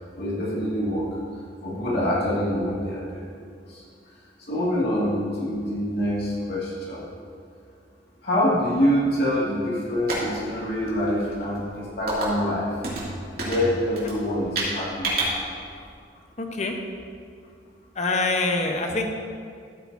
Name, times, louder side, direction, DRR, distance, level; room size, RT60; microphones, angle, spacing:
voice 1, 0.2-1.1 1.6-3.3 3.7-3.8 4.5-7.0 8.2-12.7 13.4-15.3, equal, 65° left, -7 dB, 2.3 m, -25 dB
sound 1, 9.9-15.9, right 2 dB, 60° right, 2.7 m, -31 dB
voice 2, 16.4-16.8 18.0-19.1, left 3 dB, 40° left, 3 dB, 1.0 m, -25 dB
14.0 x 8.7 x 2.8 m, 2.3 s
head